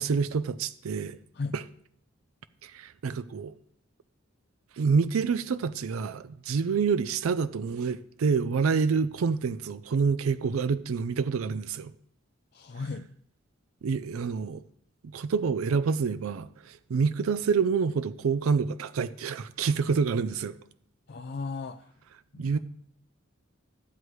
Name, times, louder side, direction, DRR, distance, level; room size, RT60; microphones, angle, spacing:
voice 1, 0.0-1.2 1.5-1.6 2.6-3.5 4.8-11.9 13.8-14.6 15.0-20.5 22.4-22.6, right 5 dB, 90° right, 0.4 m, -27 dB
voice 2, 12.5-13.1 21.1-21.9 22.3-22.6, left 4 dB, 50° left, 0.4 m, -36 dB
13.5 x 8.1 x 3.1 m
head